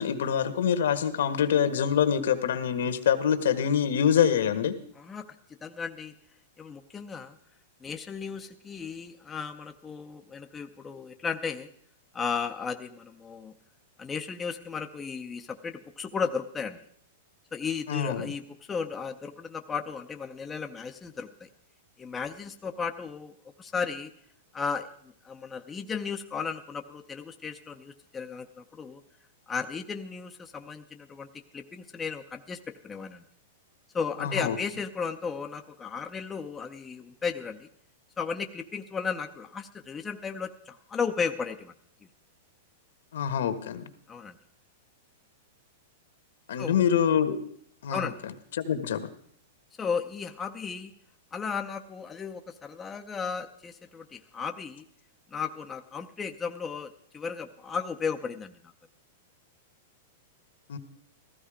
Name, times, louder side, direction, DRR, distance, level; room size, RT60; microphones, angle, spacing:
voice 1, 0.0-4.7 17.9-18.3 34.2-34.6 43.1-43.9 46.5-47.4 47.8-49.1 60.7-60.8, left 8 dB, 70° left, 9 dB, 1.5 m, -25 dB
voice 2, 5.0-5.3 5.6-6.1 6.6-7.4 7.8-11.7 12.1-13.5 14.0-16.8 17.5-21.5 22.0-24.1 24.5-29.0 29.5-31.3 31.5-33.2 33.9-37.7 38.2-41.7 44.1-44.4 46.6-46.8 47.9-48.2 49.8-50.9 51.3-54.8 55.3-58.7, left 5 dB, 10° left, 5 dB, 0.5 m, -35 dB
15.5 x 14.5 x 5.0 m, 0.62 s
supercardioid pair, 180°, 0 cm